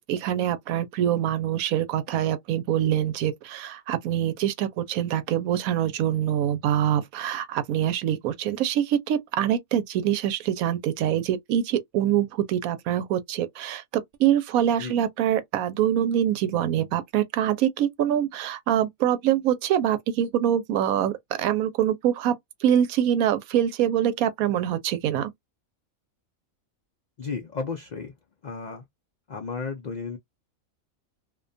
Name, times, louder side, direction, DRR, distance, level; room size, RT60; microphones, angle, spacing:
voice 1, 0.0-22.3 22.6-25.3, right 10 dB, 85° right, 1.0 m, -24 dB
voice 2, 27.2-28.1 28.4-28.8 29.3-30.2, left 4 dB, 85° left, 0.3 m, -33 dB
2.6 x 2.2 x 2.5 m
omnidirectional pair, 1.5 m